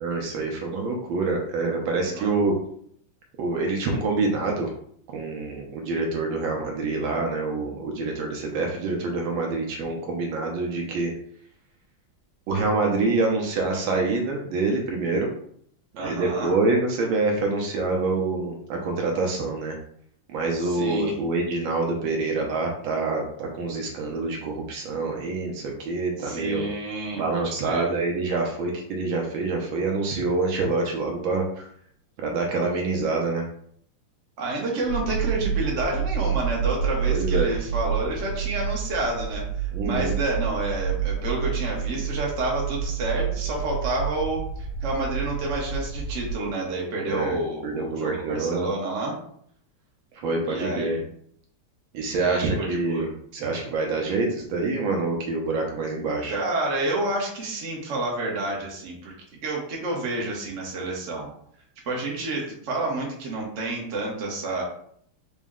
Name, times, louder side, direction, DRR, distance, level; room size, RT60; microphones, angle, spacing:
voice 1, 0.0-2.5 3.4-4.7 5.1-11.1 12.5-15.3 16.0-19.7 20.3-26.6 27.1-31.7 32.2-33.5 37.1-37.5 39.7-40.1 47.0-48.7 50.1-51.0 51.9-56.4, right 3 dB, 75° right, 1 dB, 1.3 m, -26 dB
voice 2, 16.0-16.5 20.6-21.2 26.2-27.9 34.4-49.2 50.5-51.0 52.2-53.1 56.3-59.1 59.4-61.3 61.9-64.6, right 2 dB, 50° right, -2 dB, 0.9 m, -29 dB
sound 1, 34.9-46.4, right 7 dB, 75° left, 1.6 m, -28 dB
4.1 x 2.1 x 3.6 m, 0.65 s
omnidirectional pair, 2.4 m